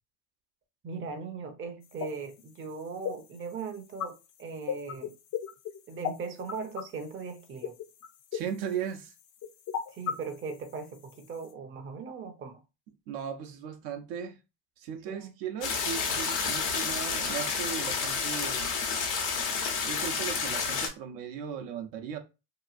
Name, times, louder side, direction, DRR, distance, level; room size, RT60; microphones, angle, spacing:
voice 1, 0.8-5.1 5.9-7.7 9.9-12.6 15.1-15.3, right 5 dB, 25° right, 0.6 m, -39 dB
sound 1, 1.8-11.5, left 9 dB, 45° left, 0.5 m, -38 dB
voice 2, 8.3-9.1 13.1-14.4 14.8-18.7 19.8-22.2, right 8 dB, 65° right, 0.7 m, -37 dB
sound 2, 15.6-20.9, left 5 dB, 80° left, 1.0 m, -30 dB
2.8 x 2.3 x 2.4 m
hypercardioid pair, 80°, 46 cm